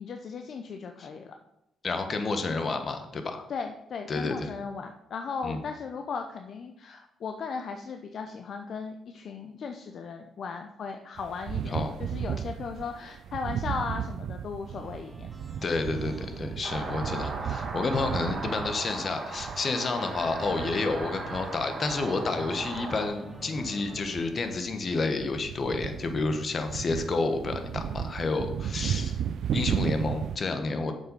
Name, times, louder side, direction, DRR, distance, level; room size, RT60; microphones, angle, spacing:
voice 1, 0.0-1.4 3.5-15.3, left 5 dB, 60° left, 5 dB, 0.6 m, -37 dB
voice 2, 1.8-3.4 4.1-4.5 5.4-5.6 11.7-11.9 15.6-29.2 29.5-30.9, left 3 dB, 40° left, 7 dB, 1.2 m, -30 dB
sound 1, 11.2-23.0 23.3-30.4, right 9 dB, 70° right, 0.4 m, -35 dB
sound 2, 14.6-24.7, right 1 dB, 15° right, 1.3 m, -47 dB
sound 3, 16.6-23.1, right 3 dB, 45° right, 1.9 m, -37 dB
7.5 x 5.5 x 5.4 m, 0.84 s
cardioid pair, 90°, 0 cm